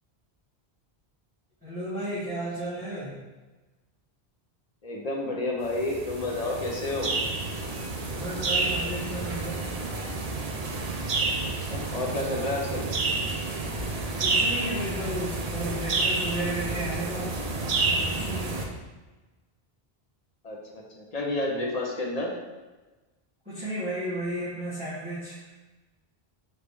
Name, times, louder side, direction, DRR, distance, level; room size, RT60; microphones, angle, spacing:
voice 1, 1.6-3.2 8.1-9.6 14.2-17.3 17.6-18.6 23.4-25.4, right 1 dB, 10° right, -15 dB, 1.5 m, -33 dB
voice 2, 4.8-7.2 11.4-12.9 20.4-22.3, left 2 dB, 45° left, -1 dB, 0.6 m, -30 dB
sound 1, 5.7-18.6, right 3 dB, 50° right, 0.5 m, -29 dB
3.9 x 3.2 x 3.4 m, 1.2 s
omnidirectional pair, 1.0 m